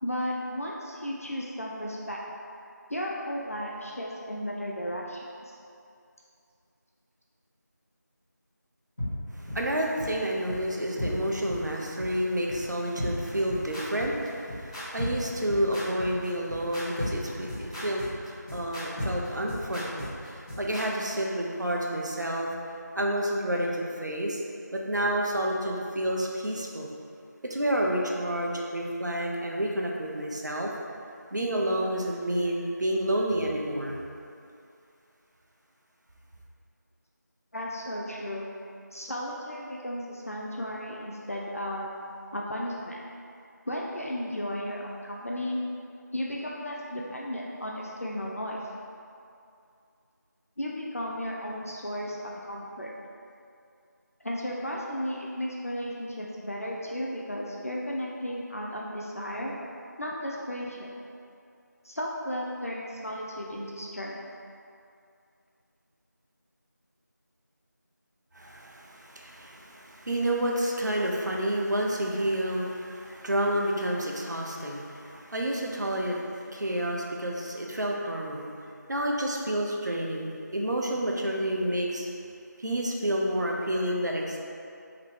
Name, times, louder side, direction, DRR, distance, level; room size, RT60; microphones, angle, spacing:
voice 1, 0.0-2.2 2.9-5.5 37.5-38.5 38.9-42.0 42.3-43.0 43.7-45.6 46.1-48.6 50.6-52.9 54.2-59.5 60.0-60.9 61.8-64.2, equal, 50° left, -3 dB, 0.4 m, -34 dB
sound 1, 9.0-9.1 9.5-9.6 10.0-10.1 10.5-10.6 11.0-11.1 11.5-11.6 12.0-12.1 12.5-12.6 13.0-20.8, left 1 dB, 20° left, 1.3 m, -34 dB
voice 2, 9.3-22.5 22.9-24.4 24.7-26.9 27.4-30.7 31.3-34.0 68.3-78.5 78.9-82.1 82.6-84.4, right 1 dB, 70° right, -1 dB, 0.6 m, -29 dB
3.5 x 2.8 x 3.5 m, 2.5 s
figure-of-eight pair, 180°, 10 cm